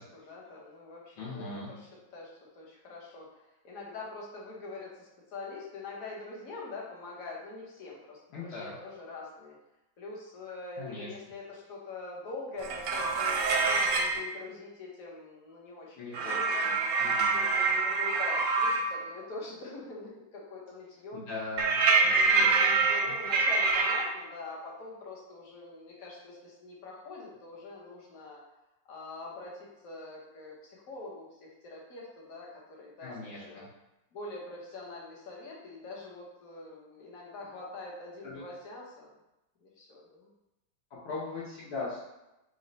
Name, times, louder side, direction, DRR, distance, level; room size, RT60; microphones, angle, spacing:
voice 1, 0.0-3.3 3.6-9.6 10.0-21.2 22.1-28.4 28.9-33.7 34.1-39.1 39.6-40.3, left 3 dB, 60° left, -3 dB, 1.0 m, -44 dB
voice 2, 1.2-1.7 8.3-8.8 10.8-11.1 16.0-16.4 16.6-16.7 17.0-17.4 21.1-23.1 33.0-33.7 37.5-37.6 38.2-38.4 40.9-42.0, left 3 dB, 80° left, -7 dB, 1.6 m, -40 dB
sound 1, 12.6-14.2 16.1-18.9 21.6-24.0, right 4 dB, 75° right, 1.0 m, -26 dB
4.1 x 2.1 x 3.8 m, 0.93 s
omnidirectional pair, 2.3 m